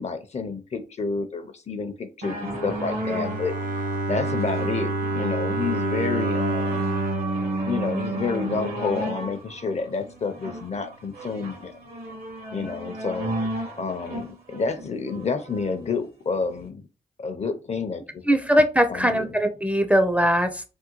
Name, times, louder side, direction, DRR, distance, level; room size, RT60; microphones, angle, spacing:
voice 1, 0.0-3.5 4.1-6.9 7.6-11.7 12.5-13.3 13.8-16.8 17.2-18.2 18.9-19.2, left 4 dB, 45° left, 9 dB, 0.6 m, -29 dB
sound 1, 2.2-15.8 16.5-16.6, right 2 dB, 80° right, 1.3 m, -33 dB
Bowed string instrument, 3.0-9.0, right 2 dB, 65° right, 0.6 m, -28 dB
voice 2, 18.3-20.6, equal, 10° right, 7 dB, 0.5 m, -20 dB
3.5 x 2.2 x 3.0 m, 0.32 s
cardioid pair, 65°, 15 cm